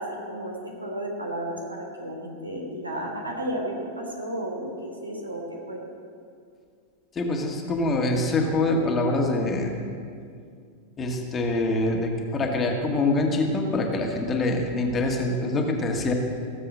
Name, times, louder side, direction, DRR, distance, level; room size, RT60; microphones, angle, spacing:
voice 1, 0.0-5.8, right 1 dB, 80° right, 0 dB, 3.0 m, -33 dB
voice 2, 7.2-9.8 11.0-16.1, left 2 dB, 20° left, 1 dB, 1.9 m, -25 dB
17.0 x 7.6 x 6.5 m, 2.2 s
figure-of-eight pair, 90°, 0 cm